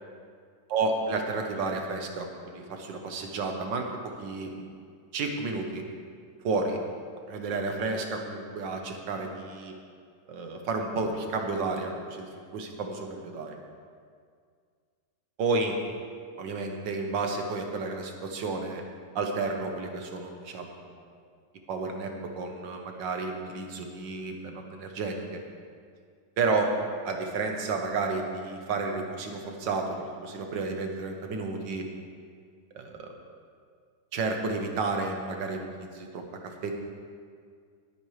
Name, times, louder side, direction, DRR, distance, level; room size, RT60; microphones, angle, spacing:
voice 1, 0.7-4.7 5.1-5.9 6.4-6.8 7.3-9.7 10.3-13.6 15.4-15.8 16.4-18.8 19.2-21.0 21.7-25.4 26.4-26.8 27.1-31.9 32.8-33.1 34.1-36.7, right 3 dB, 85° right, 3 dB, 1.8 m, -31 dB
19.0 x 8.9 x 3.3 m, 2.1 s
omnidirectional pair, 1.9 m